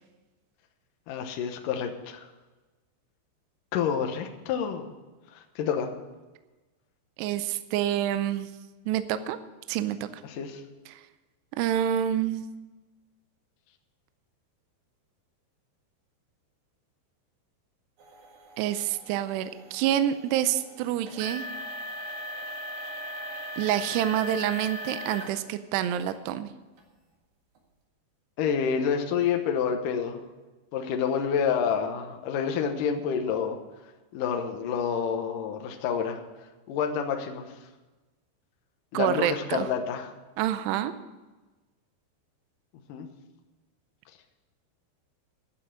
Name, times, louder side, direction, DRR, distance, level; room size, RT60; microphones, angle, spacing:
voice 1, 1.1-2.3 3.7-4.9 5.3-5.9 10.2-10.6 28.4-30.2 30.7-33.6 34.1-36.2 36.7-37.5 38.9-40.1 42.9-43.1, left 7 dB, 80° left, 4 dB, 1.9 m, -28 dB
voice 2, 7.2-8.5 8.9-9.4 9.7-10.0 10.9-11.0 11.6-12.5 18.6-21.4 23.6-26.5 38.9-39.7 40.4-40.9, right 11 dB, 80° right, 11 dB, 2.5 m, -27 dB
sound 1, 18.0-25.4 25.8-26.2 26.8-26.9 27.6-27.7, equal, 60° right, 3.4 m, -39 dB
11.5 x 7.6 x 9.8 m, 1.2 s
omnidirectional pair, 5.4 m